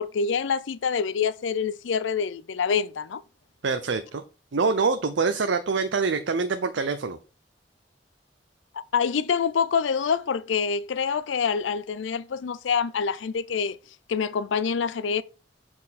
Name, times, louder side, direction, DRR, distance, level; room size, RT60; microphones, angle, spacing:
voice 1, 0.0-3.2 8.7-13.8 14.1-15.2, left 6 dB, 90° left, 0.5 m, -26 dB
voice 2, 3.6-4.2 4.5-7.2, right 4 dB, 75° right, 0.6 m, -25 dB
7.4 x 4.4 x 4.1 m
head